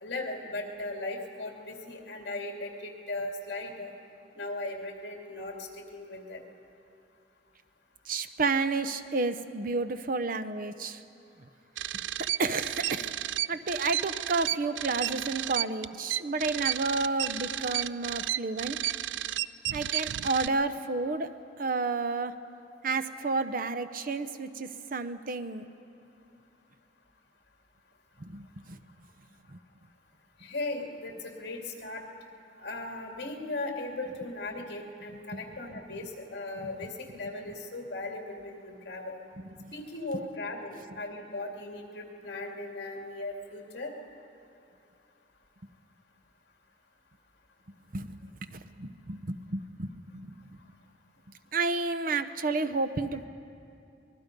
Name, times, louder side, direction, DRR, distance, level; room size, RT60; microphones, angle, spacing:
voice 1, 0.0-3.9 4.3-6.4 17.4-17.6 18.4-18.5 30.4-32.0 32.6-39.1 39.7-43.9, left 2 dB, 65° left, 1 dB, 2.6 m, -38 dB
voice 2, 8.1-11.0 12.2-13.1 13.5-18.8 19.7-21.3 21.6-22.3 22.8-25.7 28.2-28.8 29.5-29.6 35.1-35.4 36.6-36.7 39.6-39.7 47.9-50.3 51.5-53.3, right 3 dB, 50° right, 10 dB, 0.8 m, -31 dB
sound 1, 11.8-20.5, right 13 dB, 85° right, 0.4 m, -32 dB
25.0 x 20.0 x 5.3 m, 2.6 s
head